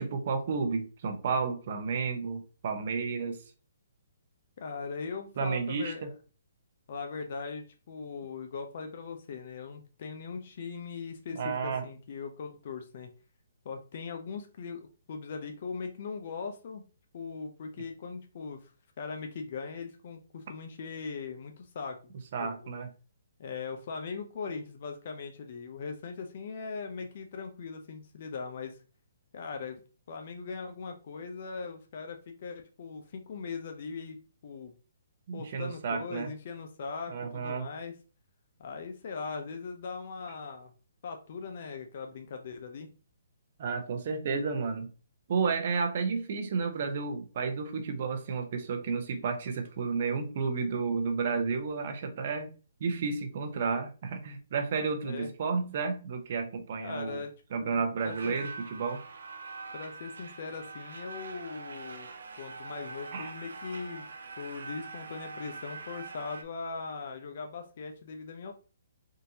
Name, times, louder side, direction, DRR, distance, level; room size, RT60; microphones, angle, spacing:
voice 1, 0.0-3.4 5.4-6.1 11.3-11.8 22.3-22.9 35.3-36.3 37.1-37.7 43.6-44.9 45.3-52.5 52.8-57.2 57.5-59.0 63.1-63.3, right 5 dB, 50° right, 6 dB, 0.7 m, -32 dB
voice 2, 4.6-6.1 6.9-13.1 13.6-16.8 17.1-18.7 19.0-22.1 22.4-22.7 23.4-28.8 29.3-29.8 30.1-34.2 34.4-34.7 35.3-37.9 38.6-40.7 41.0-42.9 55.0-55.3 56.8-58.3 59.7-62.1 62.4-64.1 64.4-68.5, left 5 dB, 50° left, 5 dB, 0.5 m, -40 dB
sound 1, 58.0-66.4, right 4 dB, 85° right, 0.5 m, -44 dB
3.7 x 2.5 x 2.8 m, 0.35 s
hypercardioid pair, 160°, 0 cm